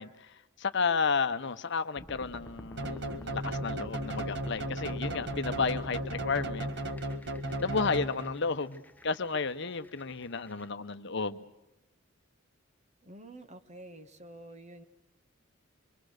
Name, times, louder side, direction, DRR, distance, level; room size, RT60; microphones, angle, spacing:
voice 1, 0.0-6.7 7.6-11.4, left 4 dB, 60° left, 10 dB, 0.9 m, -32 dB
sound 1, 2.0-10.7, left 1 dB, 10° left, 0.8 m, -50 dB
sound 2, 2.8-8.5, right 1 dB, 60° right, 1.7 m, -35 dB
voice 2, 13.0-14.8, right 1 dB, 35° right, 8 dB, 1.5 m, -48 dB
26.0 x 24.0 x 6.6 m, 0.97 s
head